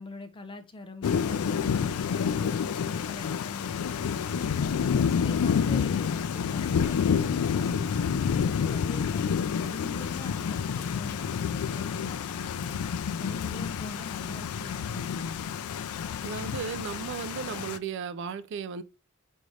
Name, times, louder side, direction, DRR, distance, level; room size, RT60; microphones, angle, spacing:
voice 1, 0.0-4.7 5.2-9.3 9.6-12.8 13.2-15.4, left 2 dB, 25° left, 0.5 m, -43 dB
Thunder / Rain, 1.0-17.8, left 7 dB, 90° left, 0.4 m, -29 dB
voice 2, 16.2-18.8, right 6 dB, 55° right, 0.3 m, -35 dB
4.8 x 2.7 x 3.1 m
head